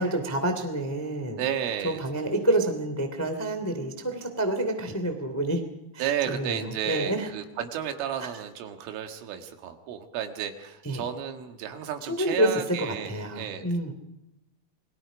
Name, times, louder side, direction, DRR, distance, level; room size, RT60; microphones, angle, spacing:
voice 1, 0.0-1.4 1.8-5.6 5.9-7.3 8.2-8.3 10.8-11.0 12.0-13.9, right 1 dB, 15° left, 6 dB, 0.5 m, -28 dB
voice 2, 1.4-2.0 6.0-13.6, right 9 dB, 80° right, 6 dB, 4.2 m, -32 dB
28.5 x 22.5 x 5.1 m, 0.92 s
omnidirectional pair, 5.6 m